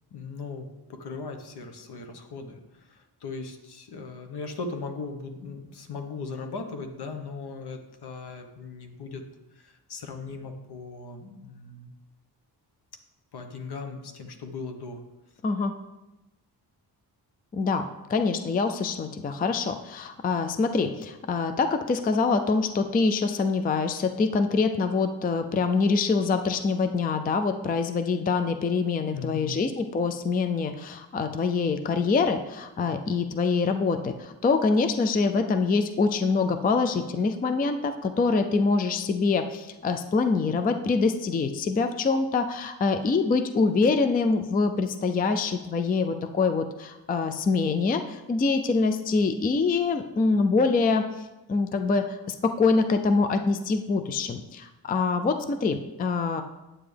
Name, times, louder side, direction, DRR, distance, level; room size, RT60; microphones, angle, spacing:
voice 1, 0.1-9.2 9.5-11.9 13.3-15.0 29.1-29.6, left 4 dB, 75° left, 5 dB, 1.2 m, -38 dB
voice 2, 15.4-15.8 17.5-51.1 51.5-56.4, left 4 dB, 25° left, 8 dB, 0.3 m, -25 dB
9.2 x 8.6 x 3.4 m, 1.0 s
wide cardioid pair, 170°, 40 cm